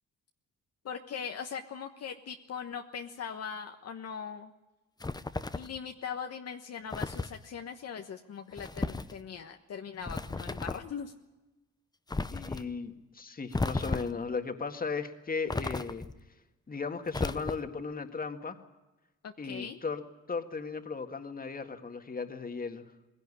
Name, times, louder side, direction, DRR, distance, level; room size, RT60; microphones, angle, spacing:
voice 1, 0.8-4.5 5.5-11.1 19.2-19.8, left 7 dB, 55° left, 4 dB, 1.2 m, -40 dB
sound 1, 5.0-5.8 6.9-7.4 8.6-9.1 10.0-10.9 12.1-12.6 13.5-14.3 15.5-16.2 17.1-17.8, left 3 dB, 15° left, 0.7 m, -34 dB
voice 2, 12.3-16.0 16.7-18.6 19.4-20.0 20.3-22.8, left 4 dB, 30° left, 7 dB, 1.9 m, -36 dB
20.0 x 17.0 x 9.9 m, 1.1 s
cardioid pair, 90°, 30 cm